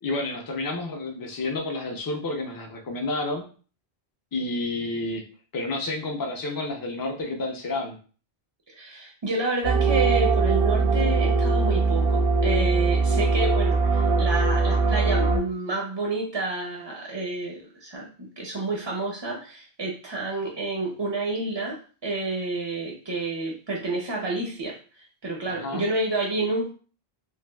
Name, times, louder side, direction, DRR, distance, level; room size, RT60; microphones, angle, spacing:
voice 1, 0.0-3.5 4.3-5.2 5.5-8.0 25.5-25.9, left 2 dB, 35° left, 2 dB, 0.3 m, -30 dB
voice 2, 8.7-26.7, right 2 dB, 40° right, -1 dB, 0.4 m, -29 dB
sound 1, 9.6-15.4, right 4 dB, 85° right, 1.0 m, -21 dB
3.4 x 2.4 x 2.2 m, 0.39 s
omnidirectional pair, 1.1 m